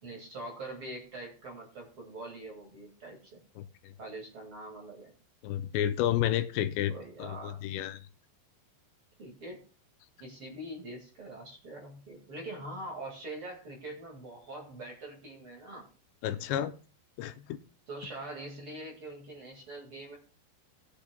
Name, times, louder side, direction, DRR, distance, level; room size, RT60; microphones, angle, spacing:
voice 1, 0.0-3.4 4.0-5.1 6.9-7.6 9.2-9.6 10.2-15.9 17.9-20.2, right 1 dB, 40° right, -1 dB, 2.2 m, -43 dB
voice 2, 3.6-3.9 5.4-6.9 7.2-8.0 16.2-16.7 17.2-17.6, left 11 dB, 85° left, 11 dB, 2.8 m, -31 dB
19.0 x 8.4 x 2.3 m, 0.36 s
omnidirectional pair, 4.9 m